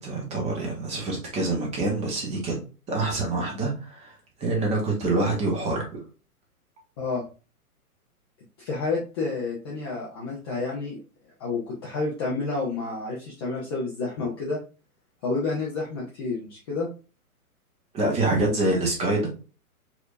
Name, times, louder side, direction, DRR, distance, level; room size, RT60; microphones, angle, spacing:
voice 1, 0.0-2.6 2.9-4.1 4.4-6.0 17.9-19.3, right 2 dB, 15° right, 0.9 m, -26 dB
voice 2, 8.6-11.0 11.4-14.6 15.2-16.9, left 3 dB, 15° left, 0.5 m, -29 dB
4.4 x 2.7 x 2.4 m
figure-of-eight pair, 120°, 45 cm